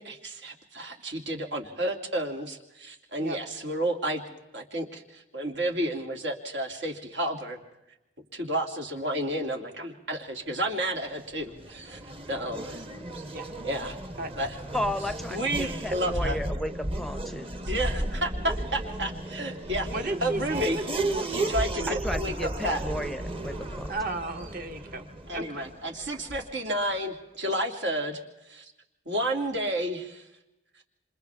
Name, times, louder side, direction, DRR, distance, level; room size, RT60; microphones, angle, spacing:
voice 1, 0.0-4.2 4.5-7.6 8.3-12.0 12.3-12.8 13.6-14.0 14.4-14.6 15.3-16.4 17.7-19.9 20.2-20.8 21.3-22.8 25.3-28.2 28.5-28.7 29.1-30.2, right 1 dB, 80° right, 2 dB, 2.7 m, -31 dB
Race car auto racing / Accelerating revving vroom, 11.0-26.7, right 1 dB, 30° right, 1.2 m, -34 dB
voice 2, 14.7-17.5 21.9-23.9, equal, ahead, 11 dB, 0.6 m, -33 dB
voice 3, 19.9-21.2 23.9-25.1 25.3-25.7, right 2 dB, 50° right, 5 dB, 1.5 m, -34 dB
28.0 x 26.5 x 3.5 m, 0.94 s
head